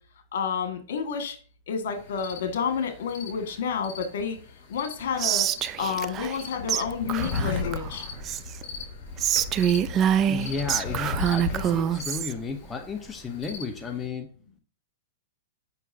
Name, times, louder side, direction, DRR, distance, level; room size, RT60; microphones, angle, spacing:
voice 1, 0.3-1.4 1.7-4.4 4.7-5.5 5.8-8.1, left 6 dB, 75° left, 6 dB, 1.8 m, -30 dB
sound 1, 1.9-14.1, left 4 dB, 45° left, 3.7 m, -37 dB
Whispering, 5.2-6.4 6.7-6.8 7.1-8.6 9.2-12.3, right 10 dB, 30° right, 0.4 m, -26 dB
voice 2, 10.3-14.3, left 5 dB, 10° left, 3 dB, 0.8 m, -33 dB
8.1 x 6.0 x 2.8 m, 0.43 s
hypercardioid pair, 140°, 0 cm